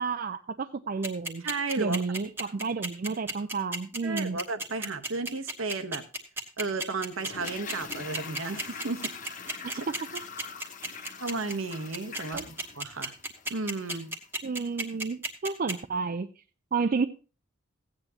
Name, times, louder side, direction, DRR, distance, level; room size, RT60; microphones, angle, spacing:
voice 1, 0.0-1.4 1.8-4.4 9.6-9.8 12.3-12.4 14.4-16.3 16.7-17.1, right 4 dB, 40° right, 9 dB, 0.4 m, -31 dB
sound 1, 1.0-15.7, right 2 dB, 10° right, 1.1 m, -33 dB
voice 2, 1.4-2.2 4.0-6.1 6.6-9.8 11.2-13.1 13.5-14.1, right 3 dB, 70° right, 8 dB, 1.0 m, -34 dB
Toilet flush, 7.1-14.2 14.5-14.6, left 5 dB, 35° left, 0.9 m, -43 dB
15.5 x 8.9 x 2.8 m, 0.34 s
head